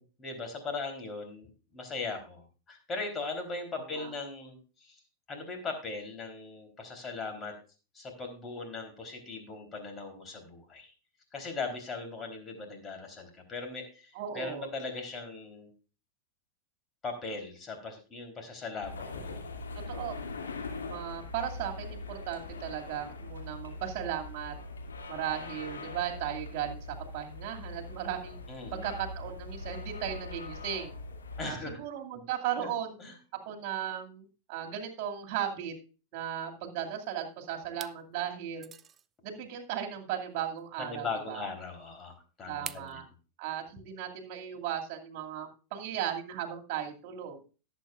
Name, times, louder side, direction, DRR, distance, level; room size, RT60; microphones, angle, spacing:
voice 1, 0.2-5.0 5.3-7.5 7.9-10.9 11.3-15.7 17.0-19.4 28.5-28.9 31.4-31.8 32.1-32.2 32.6-32.7 33.0-33.1 40.8-43.0, left 3 dB, 20° left, 4 dB, 3.7 m, -39 dB
voice 2, 3.8-4.1 14.1-14.7 19.9-20.2 20.9-24.6 25.1-28.4 28.7-31.0 31.4-32.9 33.3-35.7 36.1-38.7 39.2-41.5 42.5-43.1 43.4-47.4, right 10 dB, 45° right, 3 dB, 2.5 m, -36 dB
sound 1, 18.8-31.5, left 3 dB, 70° left, 2.5 m, -42 dB
sound 2, 36.9-37.3 37.7-38.0 38.6-39.1 40.6-40.7 42.7-42.9, right 8 dB, 25° right, 0.5 m, -43 dB
18.5 x 8.2 x 2.5 m, 0.35 s
figure-of-eight pair, 90°, 0 cm